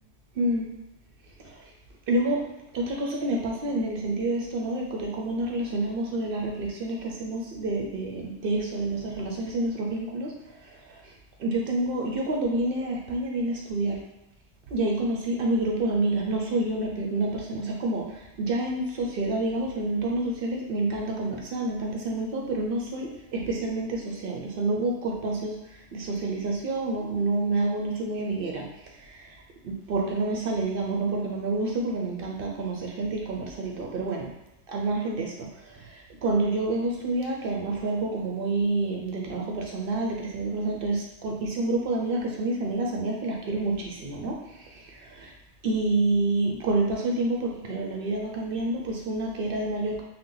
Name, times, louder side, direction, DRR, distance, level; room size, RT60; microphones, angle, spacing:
voice 1, 0.4-0.7 2.1-2.4 2.7-10.3 10.9-11.0 11.4-14.0 14.7-25.5 25.9-28.7 29.1-29.3 29.6-34.3 34.7-35.5 35.7-45.3 45.6-50.0, right 2 dB, 60° right, 0 dB, 0.6 m, -28 dB
2.8 x 2.1 x 3.7 m, 0.95 s
omnidirectional pair, 1.2 m